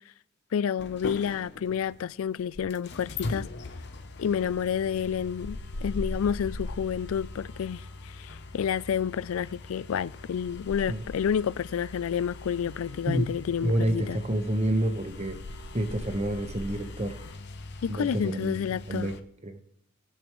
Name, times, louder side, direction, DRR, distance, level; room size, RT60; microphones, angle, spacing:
voice 1, 0.5-3.5 4.2-14.2 17.8-19.1, left 8 dB, 90° left, 0.4 m, -29 dB
sound 1, 0.8-19.2, left 2 dB, 55° left, 0.7 m, -40 dB
voice 2, 13.6-15.4 15.7-17.2 17.9-19.2 19.4-19.6, right 1 dB, 30° right, 1.0 m, -28 dB
19.5 x 7.1 x 3.1 m
head